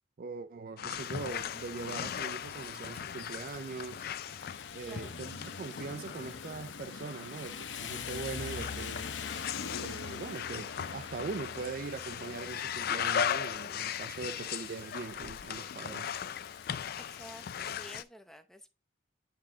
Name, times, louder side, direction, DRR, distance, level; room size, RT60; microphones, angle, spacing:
voice 1, 0.2-4.1 4.7-9.2 9.8-16.2, right 4 dB, 50° right, 0.4 m, -41 dB
sound 1, 0.8-18.0, left 8 dB, 55° left, 0.4 m, -38 dB
Rain, 1.0-18.0, left 6 dB, 75° left, 0.7 m, -45 dB
voice 2, 17.0-18.7, equal, ahead, 0.7 m, -51 dB
9.6 x 3.6 x 3.7 m
head